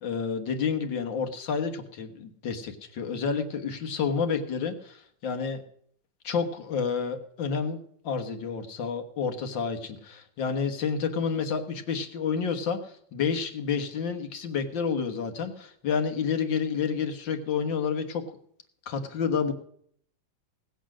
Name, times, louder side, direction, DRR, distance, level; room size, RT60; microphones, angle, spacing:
voice 1, 0.0-5.6 6.2-7.8 8.0-18.2 18.9-19.5, left 6 dB, 90° left, 5 dB, 2.1 m, -29 dB
18.0 x 8.2 x 6.2 m, 0.65 s
omnidirectional pair, 2.0 m